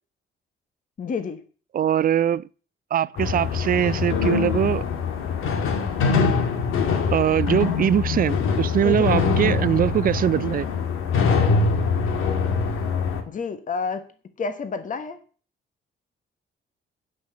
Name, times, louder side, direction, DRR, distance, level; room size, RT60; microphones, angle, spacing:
voice 1, 1.0-1.4 8.8-9.1 9.4-9.6 13.2-14.0 14.4-15.2, left 5 dB, 40° left, 1.3 m, -29 dB
voice 2, 1.7-2.4 2.9-4.8 7.1-10.7, right 10 dB, 45° right, 0.4 m, -22 dB
sound 1, 3.2-13.2, left 5 dB, 85° left, 2.0 m, -23 dB
10.5 x 5.9 x 7.4 m
cardioid pair, 120°, 21 cm